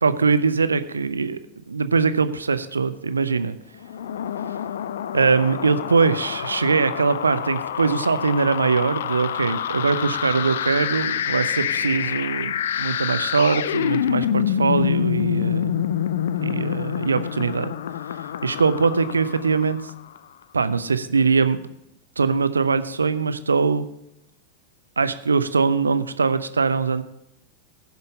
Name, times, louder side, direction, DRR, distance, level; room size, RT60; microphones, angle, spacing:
voice 1, 0.0-1.4 1.7-3.6 5.1-15.9 16.4-17.7 18.4-19.8 20.5-21.6 22.2-23.9 25.0-27.0, right 4 dB, 75° right, 12 dB, 0.6 m, -22 dB
sound 1, 3.8-20.2, left 9 dB, 60° left, 0.4 m, -27 dB
10.5 x 5.4 x 6.8 m, 0.82 s
figure-of-eight pair, 90°, 0 cm